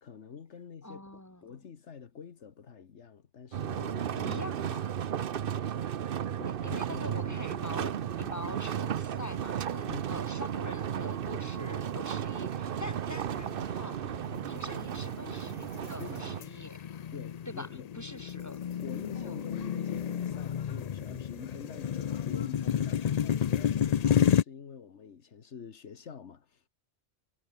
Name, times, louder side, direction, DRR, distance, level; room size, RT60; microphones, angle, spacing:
voice 1, 0.0-4.8 6.4-7.4 9.9-10.1 16.0-16.2 17.1-17.9 18.8-26.7, left 6 dB, 80° left, 1.6 m, -46 dB
voice 2, 0.8-1.4 4.2-4.9 6.3-6.4 6.6-14.2 14.5-16.9 17.5-17.7 17.9-18.6 19.1-19.4, left 1 dB, 15° left, 3.4 m, -44 dB
sound 1, 3.5-16.4, right 9 dB, 55° right, 0.9 m, -34 dB
sound 2, 8.0-8.5 8.9-9.0 9.7-10.2 10.7-11.0 11.6-24.4, left 9 dB, 50° left, 0.5 m, -31 dB
omnidirectional pair, 1.2 m